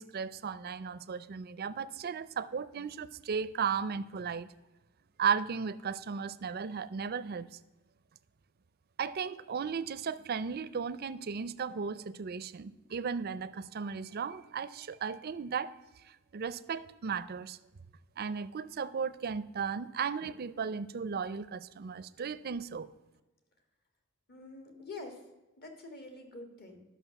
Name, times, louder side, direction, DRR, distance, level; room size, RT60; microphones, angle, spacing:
voice 1, 0.0-4.5 5.2-7.5 9.0-15.7 16.3-17.6 18.2-22.9, right 6 dB, 45° right, 15 dB, 0.5 m, -35 dB
voice 2, 24.3-25.2 25.6-26.8, left 2 dB, 50° left, 4 dB, 1.7 m, -46 dB
11.0 x 6.0 x 6.9 m, 1.1 s
head